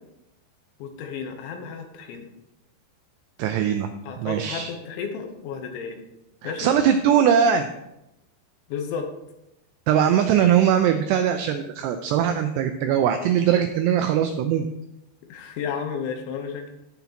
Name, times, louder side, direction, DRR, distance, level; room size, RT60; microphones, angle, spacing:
voice 1, 0.8-2.3 4.1-6.0 6.4-6.7 8.7-9.1 15.3-16.7, left 6 dB, 80° left, 5 dB, 3.3 m, -32 dB
voice 2, 3.4-3.9 4.2-4.7 6.4-7.7 9.9-14.7, right 9 dB, 90° right, 7 dB, 2.4 m, -21 dB
15.5 x 5.9 x 2.9 m, 0.89 s
omnidirectional pair, 5.4 m